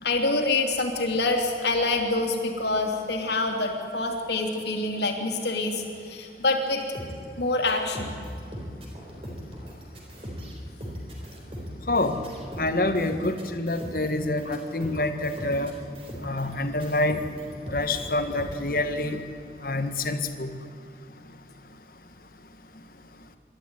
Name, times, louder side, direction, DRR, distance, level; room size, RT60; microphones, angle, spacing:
voice 1, 0.0-6.8 7.4-8.1 15.0-15.1, left 2 dB, 75° left, 3 dB, 3.0 m, -26 dB
sound 1, 6.7-16.5 16.8-18.7, equal, 30° right, 4.3 m, -39 dB
voice 2, 11.9-12.2 12.6-15.7 16.2-17.2 17.7-19.2 19.6-20.6, left 2 dB, 50° left, 7 dB, 1.5 m, -27 dB
26.0 x 12.5 x 9.6 m, 2.4 s
head